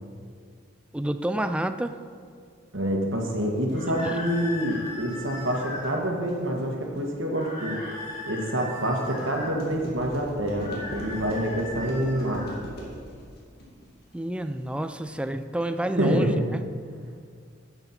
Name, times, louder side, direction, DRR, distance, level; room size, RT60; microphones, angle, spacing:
voice 1, 0.9-2.0 4.0-4.2 14.1-16.6, right 1 dB, 5° right, 9 dB, 0.3 m, -29 dB
voice 2, 2.7-7.8 8.3-12.4 16.0-16.5, equal, 75° right, 1 dB, 1.6 m, -27 dB
sound 1, 3.3-15.2, equal, 55° left, 2.3 m, -42 dB
sound 2, 3.7-6.0 7.3-9.5 10.5-12.6, left 1 dB, 35° left, 2.8 m, -38 dB
10.5 x 8.0 x 4.4 m, 2.1 s
head